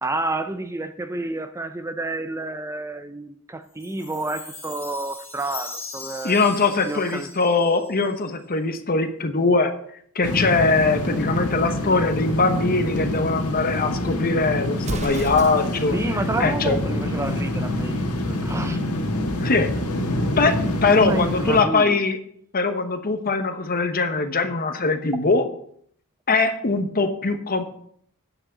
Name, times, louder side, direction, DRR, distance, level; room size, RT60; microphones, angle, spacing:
voice 1, 0.0-6.4 6.9-7.3 15.9-18.8 21.0-22.0, right 2 dB, 15° right, 0.4 m, -30 dB
Chime, 3.8-8.3, left 3 dB, 10° left, 2.2 m, -39 dB
voice 2, 6.2-9.7 10.1-16.0 16.4-16.8 19.4-19.7 20.4-22.2 22.5-25.4 26.3-27.6, left 3 dB, 40° left, 1.1 m, -21 dB
sound 1, 10.2-21.6, left 1 dB, 85° left, 1.7 m, -26 dB
Explosion, 14.8-15.9, right 2 dB, 30° right, 0.8 m, -32 dB
9.1 x 6.3 x 7.1 m
head